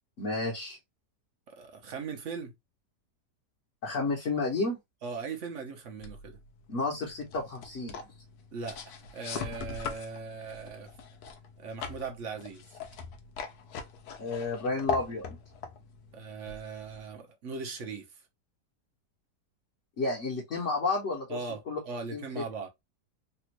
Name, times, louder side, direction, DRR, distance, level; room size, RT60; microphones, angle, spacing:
voice 1, 0.2-0.8 3.8-4.8 6.7-7.9 14.2-15.2 20.0-21.4 21.7-21.8 22.1-22.2, left 3 dB, 50° left, 1.2 m, -31 dB
voice 2, 1.5-2.5 5.0-6.4 8.5-10.9 11.6-12.6 16.1-18.1 21.3-21.6 21.8-22.7, right 5 dB, 55° right, 1.1 m, -39 dB
sound 1, 6.0-17.1, left 5 dB, 70° left, 1.1 m, -41 dB
3.4 x 2.4 x 2.9 m
omnidirectional pair, 1.8 m